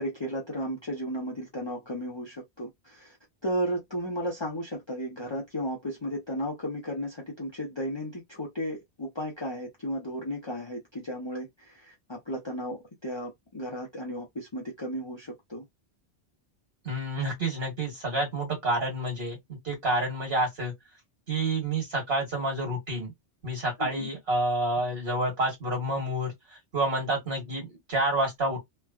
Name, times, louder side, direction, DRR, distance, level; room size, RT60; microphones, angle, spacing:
voice 1, 0.0-3.2 3.4-15.7 23.8-24.1, equal, 30° left, 0.6 m, -34 dB
voice 2, 16.8-20.7 21.3-23.1 23.4-28.6, right 1 dB, 60° right, 1.7 m, -29 dB
3.2 x 2.2 x 2.3 m
omnidirectional pair, 1.1 m